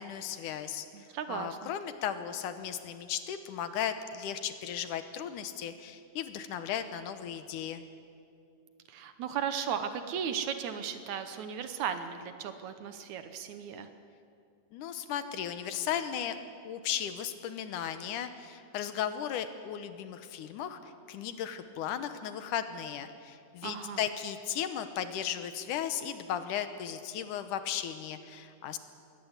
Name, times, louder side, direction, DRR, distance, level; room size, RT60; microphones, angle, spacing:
voice 1, 0.0-0.9 1.3-7.8 14.7-16.4 16.6-28.8, left 9 dB, 75° left, 10 dB, 2.4 m, -36 dB
voice 2, 0.9-1.7 8.9-13.9 23.6-24.0, right 8 dB, 70° right, 9 dB, 2.1 m, -36 dB
21.0 x 18.0 x 8.2 m, 2.5 s
omnidirectional pair, 3.9 m